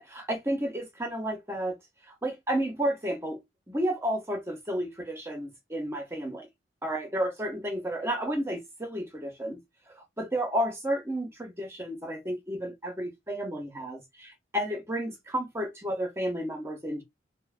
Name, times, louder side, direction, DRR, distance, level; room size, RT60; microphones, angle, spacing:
voice 1, 0.0-1.8 2.1-3.4 3.7-6.5 6.8-9.6 9.9-17.0, equal, 15° right, 0.7 m, -32 dB
3.0 x 2.0 x 2.3 m
head